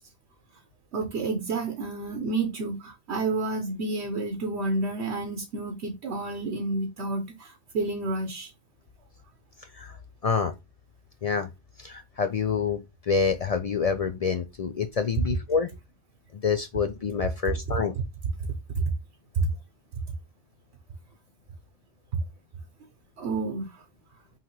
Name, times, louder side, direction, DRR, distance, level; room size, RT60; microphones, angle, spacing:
voice 1, 0.9-8.5 18.8-18.9 19.3-19.5 23.2-23.8, right 3 dB, 75° right, 1.1 m, -30 dB
voice 2, 10.2-10.5 11.2-11.5 11.8-12.8 13.1-15.7 16.4-17.9, left 6 dB, 55° left, 0.4 m, -27 dB
5.6 x 2.9 x 3.0 m
omnidirectional pair, 1.1 m